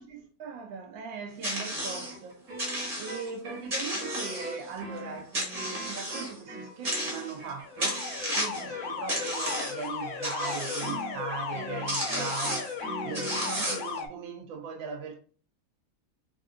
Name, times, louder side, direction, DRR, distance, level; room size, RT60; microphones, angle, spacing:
voice 1, 0.0-15.2, right 6 dB, 90° right, 1.5 m, -40 dB
sound 1, 1.4-2.1 2.6-3.3 3.7-4.8 5.3-6.3 6.8-7.5 7.8-8.7 9.1-9.9 10.2-10.9 11.6-11.7 11.9-12.7 13.1-14.0, equal, 25° right, 0.9 m, -33 dB
sound 2, 1.7-13.7, right 1 dB, 50° right, 1.2 m, -41 dB
Alarm, 7.6-14.1, left 6 dB, 75° left, 0.9 m, -36 dB
4.5 x 2.5 x 2.4 m
omnidirectional pair, 2.0 m